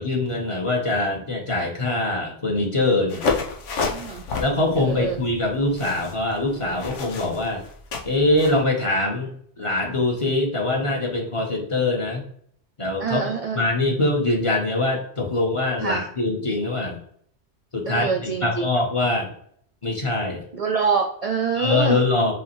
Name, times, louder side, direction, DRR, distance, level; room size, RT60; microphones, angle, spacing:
voice 1, 0.0-3.2 4.4-7.6 8.0-9.3 9.6-12.2 12.8-13.3 13.5-17.0 17.7-19.3 19.8-20.4 21.5-22.3, left 2 dB, 30° left, 0 dB, 0.9 m, -23 dB
sound 1, 3.1-8.6, left 4 dB, 85° left, 1.1 m, -30 dB
voice 2, 3.9-4.3 4.8-5.2 13.0-13.7 15.8-16.1 17.9-18.7 20.5-22.0, right 5 dB, 55° right, 3 dB, 0.4 m, -25 dB
5.6 x 3.1 x 3.0 m, 0.62 s
omnidirectional pair, 1.2 m